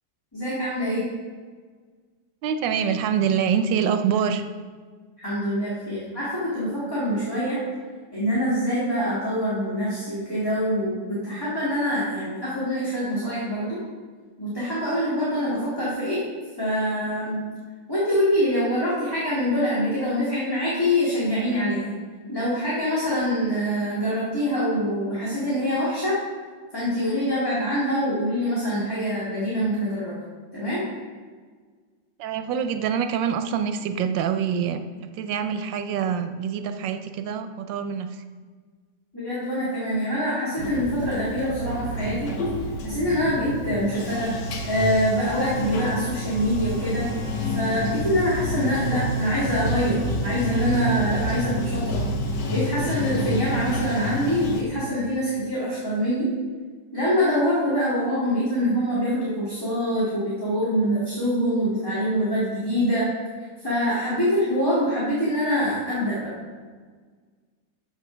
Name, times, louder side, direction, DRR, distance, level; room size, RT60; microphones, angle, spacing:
voice 1, 0.3-1.1 5.2-7.6 8.1-13.8 14.4-16.2 16.6-17.4 17.9-21.9 22.3-26.2 26.7-30.1 30.5-30.8 39.1-42.3 42.8-44.3 44.6-47.1 47.5-50.0 50.2-52.0 52.5-56.3 56.9-63.1 63.6-66.3, equal, 10° left, -9 dB, 2.1 m, -25 dB
voice 2, 2.4-4.4 32.2-38.2 57.6-57.7, right 7 dB, 90° right, 8 dB, 1.4 m, -25 dB
Bathtub (filling or washing), 40.6-54.6, equal, 70° left, 1.5 m, -29 dB
Bowed string instrument, 44.5-48.4, left 3 dB, 70° right, 2.6 m, -38 dB
7.1 x 6.8 x 6.2 m, 1.5 s
omnidirectional pair, 2.0 m